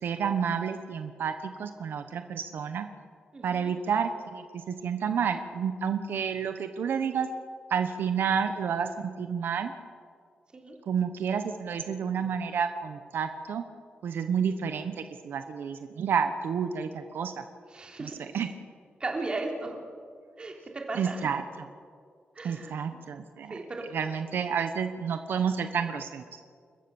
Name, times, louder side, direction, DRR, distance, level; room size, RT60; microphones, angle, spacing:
voice 1, 0.0-2.9 3.4-7.3 7.7-9.7 10.9-13.6 14.0-14.9 15.2-17.4 18.0-18.1 18.3-18.5 21.0-21.4 22.4-23.5 23.9-26.4, right 7 dB, 80° right, 8 dB, 1.1 m, -30 dB
voice 2, 3.3-3.7 10.5-10.7 17.7-18.3 19.0-19.8 20.4-21.3 22.3-23.0 23.5-23.8, right 2 dB, 30° right, 1 dB, 3.3 m, -36 dB
29.0 x 14.5 x 7.2 m, 2.1 s
wide cardioid pair, 170°, 4 cm